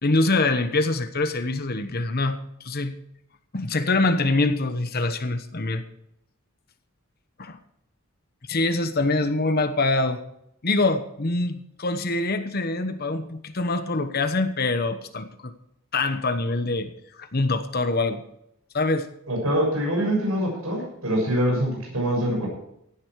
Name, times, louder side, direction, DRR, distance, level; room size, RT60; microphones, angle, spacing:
voice 1, 0.0-2.9 3.5-5.8 7.4-7.6 8.5-10.2 10.6-15.5 15.9-16.9 17.2-18.2 18.7-19.1, left 2 dB, 45° left, 9 dB, 1.1 m, -24 dB
voice 2, 19.3-22.5, equal, 75° right, 0 dB, 6.7 m, -24 dB
16.5 x 10.0 x 4.7 m, 0.77 s
head